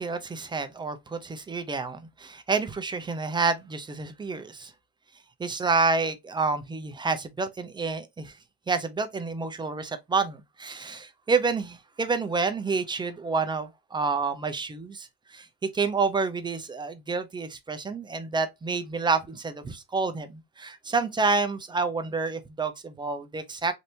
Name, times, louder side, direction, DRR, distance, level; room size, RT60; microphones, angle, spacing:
voice 1, 0.0-4.7 5.4-8.4 8.7-23.7, right 4 dB, 10° right, 0.4 m, -29 dB
3.3 x 2.7 x 2.6 m
supercardioid pair, 100°, 43 cm